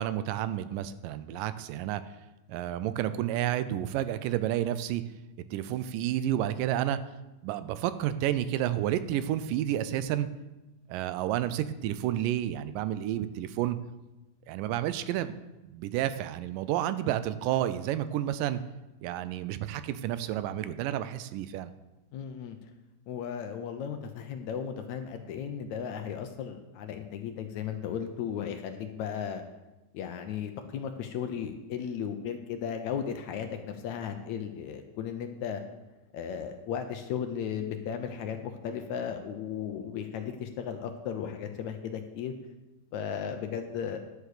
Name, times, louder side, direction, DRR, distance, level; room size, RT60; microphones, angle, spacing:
voice 1, 0.0-2.0 2.5-5.0 5.5-7.0 7.4-10.3 10.9-13.8 14.5-15.4 15.7-18.6 19.0-21.7, right 12 dB, 85° right, 13 dB, 2.2 m, -30 dB
voice 2, 22.1-22.6 23.1-29.4 29.9-35.6 36.1-42.3 42.9-44.0, left 8 dB, 75° left, 6 dB, 1.9 m, -35 dB
11.0 x 6.6 x 6.6 m, 1.0 s
omnidirectional pair, 3.8 m